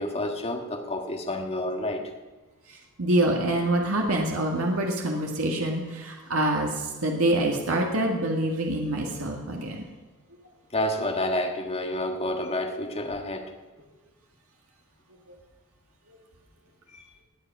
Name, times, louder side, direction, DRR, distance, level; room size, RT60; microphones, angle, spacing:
voice 1, 0.0-2.1 10.7-13.5 16.9-17.0, left 1 dB, 30° left, 4 dB, 1.6 m, -29 dB
voice 2, 3.0-9.8 16.1-16.2, right 1 dB, 75° right, 1 dB, 2.0 m, -26 dB
19.5 x 8.0 x 6.1 m, 1.2 s
head